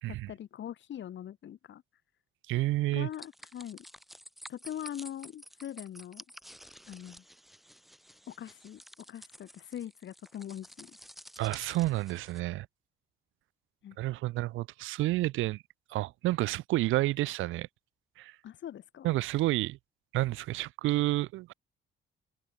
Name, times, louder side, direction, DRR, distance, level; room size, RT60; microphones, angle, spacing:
voice 1, 0.1-1.8 2.9-3.8 4.5-6.2 6.9-7.2 8.3-8.8 9.1-11.0 13.8-14.0 18.4-19.1, left 10 dB, 70° left, 6.5 m, -42 dB
voice 2, 2.5-3.1 11.4-12.7 14.0-15.6 15.9-17.7 18.2-18.3 19.0-19.8 20.1-21.5, right 17 dB, 80° right, 0.5 m, -30 dB
sound 1, 3.1-12.4, equal, ahead, 7.5 m, -51 dB
cardioid pair, 90°, 20 cm